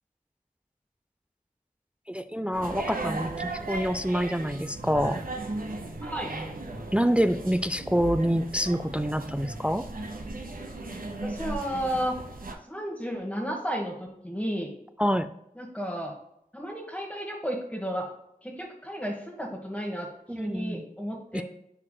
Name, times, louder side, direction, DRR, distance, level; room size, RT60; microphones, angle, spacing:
voice 1, 2.1-5.2 6.9-9.9 15.0-15.3 20.3-20.8 21.3-21.4, equal, 5° right, 11 dB, 0.3 m, -26 dB
sound 1, 2.5-12.5, right 2 dB, 70° right, 1.0 m, -36 dB
voice 2, 11.1-12.1 12.7-13.9 14.2-14.7 15.6-16.1 16.5-18.1 18.4-21.4, equal, 10° left, -3 dB, 1.3 m, -33 dB
9.7 x 4.7 x 2.2 m, 0.78 s
wide cardioid pair, 40°, 15 cm